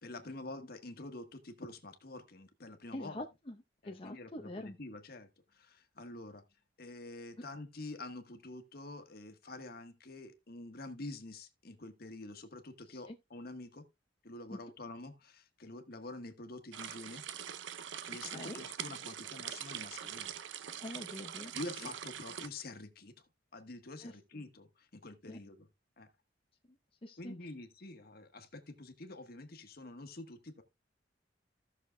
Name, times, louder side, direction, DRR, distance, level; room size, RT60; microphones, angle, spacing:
voice 1, 0.0-3.2 3.8-6.4 6.8-13.8 14.2-17.2 18.0-20.3 21.5-23.2 23.5-25.7 26.0-26.1 27.2-30.6, left 2 dB, 55° left, 1.3 m, -47 dB
voice 2, 2.9-3.6 3.8-4.8 13.1-13.2 14.5-14.6 18.3-18.6 20.8-21.5 21.8-21.9 24.0-24.1 25.3-25.4 27.0-27.4, left 1 dB, 30° left, 0.7 m, -44 dB
sound 1, 16.7-22.5, right 9 dB, 85° right, 0.6 m, -43 dB
16.0 x 6.5 x 2.2 m
head